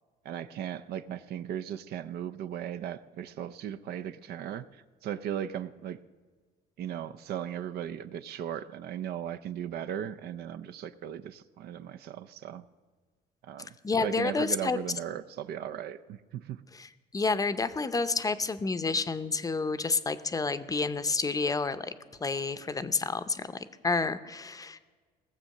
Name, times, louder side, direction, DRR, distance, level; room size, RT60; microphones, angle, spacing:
voice 1, 0.2-6.0 6.8-12.6 13.4-13.8 14.0-16.6, right 10 dB, 70° right, 13 dB, 0.6 m, -37 dB
voice 2, 13.8-14.8 16.7-21.9 22.2-24.8, left 4 dB, 20° left, 12 dB, 0.7 m, -29 dB
18.0 x 7.3 x 6.5 m, 1.4 s
cardioid pair, 110°, 17 cm